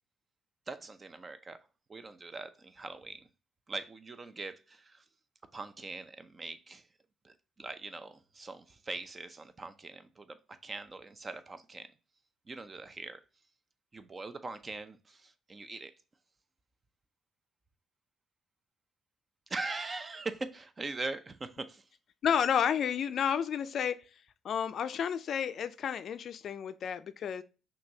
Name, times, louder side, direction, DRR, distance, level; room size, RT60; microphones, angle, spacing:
voice 1, 0.7-1.6 1.9-3.3 3.7-5.0 5.5-6.9 7.2-10.4 10.6-11.9 12.5-13.2 13.9-15.9 19.5-21.8, right 3 dB, 35° right, 0.5 m, -41 dB
voice 2, 22.2-24.0 24.4-27.4, left 8 dB, 65° left, 0.3 m, -31 dB
5.7 x 2.7 x 2.7 m
supercardioid pair, 65°, 0 cm